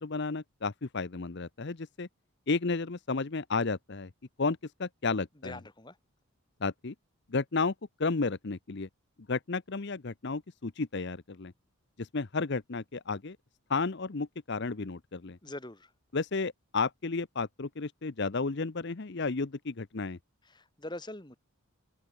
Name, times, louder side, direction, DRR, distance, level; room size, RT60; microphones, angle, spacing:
voice 1, 0.0-2.1 2.5-4.1 4.4-5.6 6.6-6.9 7.3-7.7 8.0-8.9 9.3-11.5 12.0-13.4 13.7-15.4 16.1-20.2, left 4 dB, 50° left, 0.8 m, -32 dB
voice 2, 5.4-6.0 15.4-15.9 20.4-21.4, left 1 dB, 20° left, 1.8 m, -43 dB
open air
head